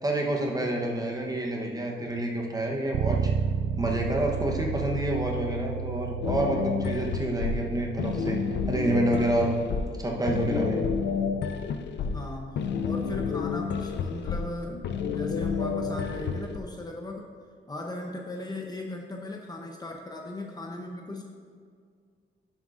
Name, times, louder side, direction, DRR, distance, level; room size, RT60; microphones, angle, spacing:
voice 1, 0.0-3.3 3.8-8.4 8.7-9.6 10.0-10.8, right 1 dB, 20° right, 0 dB, 1.0 m, -28 dB
Bass guitar, 2.9-9.2, right 6 dB, 60° right, 0.4 m, -32 dB
sound 1, 6.2-16.6, left 6 dB, 65° left, 0.5 m, -30 dB
voice 2, 12.0-17.3 17.7-21.2, left 2 dB, 20° left, 1 dB, 0.8 m, -38 dB
10.5 x 7.4 x 2.5 m, 2.1 s
cardioid pair, 125°, 20 cm